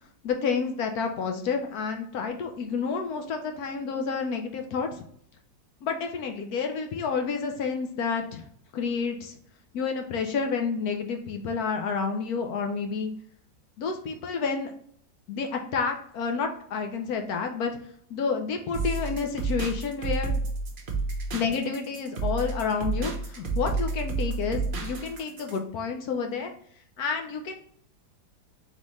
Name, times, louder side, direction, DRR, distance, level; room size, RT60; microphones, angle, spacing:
voice 1, 0.2-5.0 5.8-8.4 8.7-9.4 9.7-13.1 13.8-14.7 15.3-17.7 18.1-20.4 21.3-26.5 27.0-27.5, left 5 dB, 70° left, 4 dB, 0.9 m, -29 dB
sound 1, 18.7-25.6, right 3 dB, 50° right, 0.6 m, -30 dB
4.1 x 3.6 x 3.0 m, 0.63 s
omnidirectional pair, 2.0 m